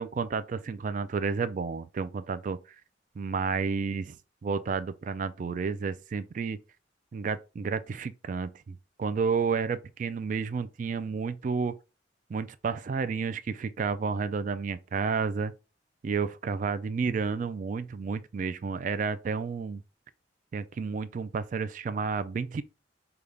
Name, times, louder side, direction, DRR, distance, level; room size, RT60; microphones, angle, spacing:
voice 1, 0.0-2.6 3.2-4.2 4.4-6.6 7.1-11.8 12.3-15.5 16.0-19.8 20.5-22.6, right 5 dB, 45° right, 0.3 m, -31 dB
5.1 x 2.3 x 3.3 m
head